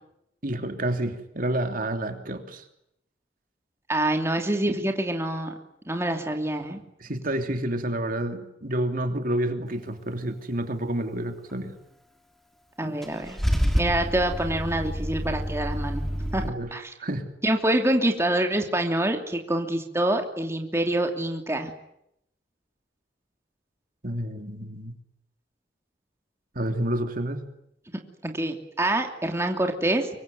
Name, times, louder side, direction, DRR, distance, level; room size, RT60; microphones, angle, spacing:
voice 1, 0.4-2.6 7.0-11.7 16.4-16.7 17.0-17.3 24.0-25.0 26.5-27.5, right 1 dB, 50° right, 6 dB, 3.0 m, -29 dB
voice 2, 3.9-5.5 5.9-6.8 12.8-13.4 13.7-16.0 16.3-16.4 16.7-16.9 17.4-21.7 28.2-30.1, right 1 dB, 15° right, 3 dB, 2.9 m, -26 dB
Car / Engine starting / Idling, 13.0-16.5, equal, ahead, 2.9 m, -28 dB
25.0 x 23.5 x 9.4 m, 0.78 s
head